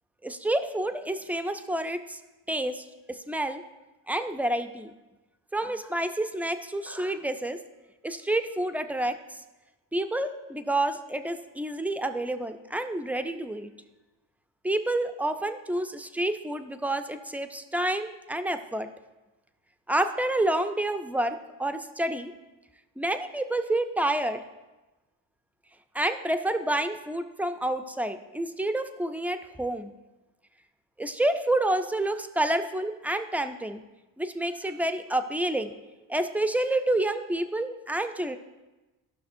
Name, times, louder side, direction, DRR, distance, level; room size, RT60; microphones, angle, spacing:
voice 1, 0.2-2.2 2.5-3.6 4.1-4.9 5.5-7.6 8.0-9.2 9.9-13.7 14.6-18.9 19.9-22.3 23.0-24.4 25.9-29.9 31.0-33.8 34.2-35.7 36.1-38.4, right 1 dB, 5° right, 8 dB, 0.4 m, -29 dB
13.0 x 5.9 x 2.6 m, 1.1 s
supercardioid pair, 60°, 46 cm